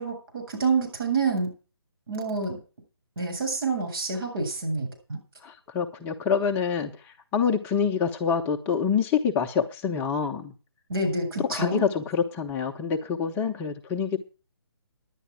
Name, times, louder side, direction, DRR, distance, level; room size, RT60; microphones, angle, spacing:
voice 1, 0.0-1.5 2.1-2.6 3.2-5.2 10.9-11.8, right 3 dB, 60° right, 1 dB, 7.8 m, -28 dB
voice 2, 5.4-10.5 11.4-14.2, left 6 dB, 15° left, 2 dB, 0.8 m, -26 dB
10.5 x 9.9 x 7.5 m, 0.36 s
figure-of-eight pair, 145°, 14 cm